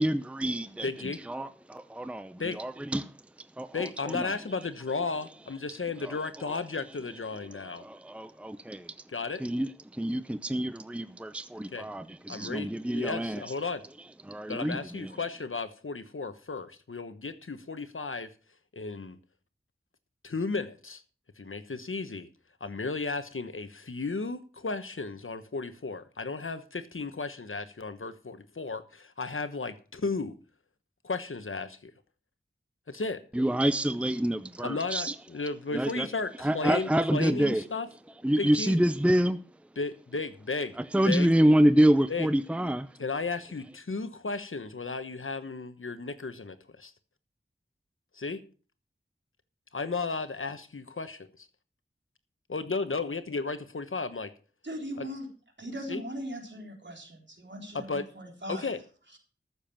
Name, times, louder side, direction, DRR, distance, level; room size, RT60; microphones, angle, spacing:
voice 1, 0.0-0.9 1.3-4.3 6.0-6.1 6.5-6.6 7.6-9.0 9.4-13.4 14.3-15.1 33.3-35.1 35.7-36.1 36.4-37.6 38.2-39.5 40.9-43.0, right 1 dB, 5° right, 0.6 m, -27 dB
voice 2, 0.8-1.2 2.4-2.6 3.7-7.8 9.1-9.4 11.7-11.8 12.3-13.8 14.5-18.3 18.7-19.2 20.2-21.0 21.4-22.3 22.6-30.4 31.0-31.9 32.9-33.2 34.6-37.9 38.4-38.8 39.8-40.8 41.0-41.3 42.1-42.3 43.0-46.9 48.1-48.4 49.7-51.5 52.5-54.3 55.0-55.1 55.9-56.0 57.9-58.1 58.5-58.8, left 4 dB, 85° left, 1.1 m, -34 dB
voice 3, 54.6-55.3 55.6-58.7, equal, 65° right, 3.8 m, -39 dB
14.0 x 7.2 x 5.9 m
wide cardioid pair, 50°, 20 cm